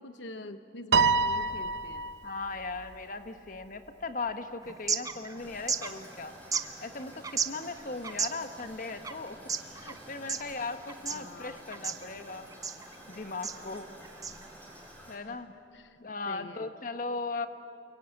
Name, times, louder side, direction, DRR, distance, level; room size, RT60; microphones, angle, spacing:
voice 1, 0.0-2.1 11.1-11.6 15.3-15.4 15.7-16.0 16.3-16.7, left 2 dB, 80° left, 10 dB, 0.9 m, -44 dB
Piano, 0.9-2.5, right 4 dB, 65° right, 0.8 m, -26 dB
voice 2, 2.2-6.3 6.8-9.4 9.7-12.5 13.1-13.9 15.1-15.5 16.0-17.5, left 3 dB, 45° left, 8 dB, 1.3 m, -38 dB
sound 1, 4.6-14.9, right 5 dB, 20° right, 0.9 m, -37 dB
Toilet flush, 5.4-15.2, equal, 10° left, 4.8 m, -51 dB
29.5 x 22.0 x 9.2 m, 2.6 s
head